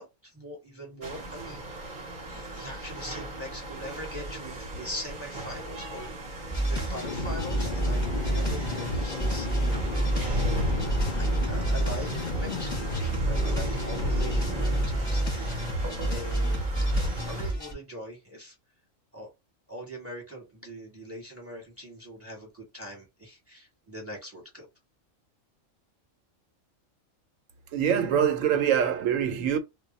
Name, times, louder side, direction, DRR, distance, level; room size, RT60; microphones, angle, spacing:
voice 1, 0.0-2.0 2.3-6.1 6.6-15.6 16.0-18.5 19.1-19.3 19.7-24.7, equal, 10° right, 0.9 m, -42 dB
sound 1, 1.0-17.5, equal, 45° right, 0.8 m, -35 dB
sound 2, 6.5-17.7, right 1 dB, 25° left, 0.8 m, -29 dB
sound 3, 6.8-15.8, left 3 dB, 60° left, 0.4 m, -36 dB
voice 2, 27.7-29.6, right 8 dB, 80° right, 1.0 m, -24 dB
2.3 x 2.1 x 3.8 m
omnidirectional pair, 1.4 m